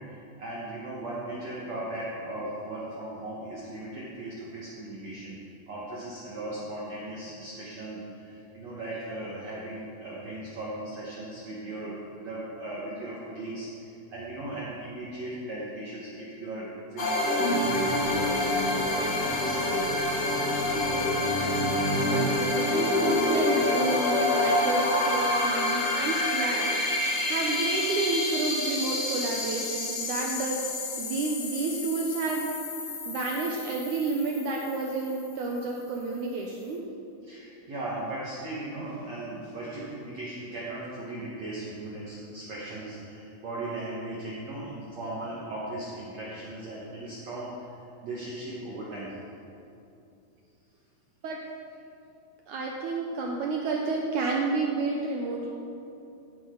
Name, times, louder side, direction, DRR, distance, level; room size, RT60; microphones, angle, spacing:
voice 1, 0.0-5.4 5.7-20.4 37.2-49.1, right 1 dB, 55° right, -6 dB, 2.2 m, -38 dB
sound 1, 17.0-35.4, left 1 dB, 55° left, 1.8 m, -27 dB
voice 2, 20.7-21.2 22.1-26.7 27.3-32.6 33.1-36.9 51.2-51.4 52.5-55.5, right 3 dB, 85° right, 0 dB, 1.7 m, -30 dB
16.5 x 10.0 x 3.9 m, 2.7 s
omnidirectional pair, 4.7 m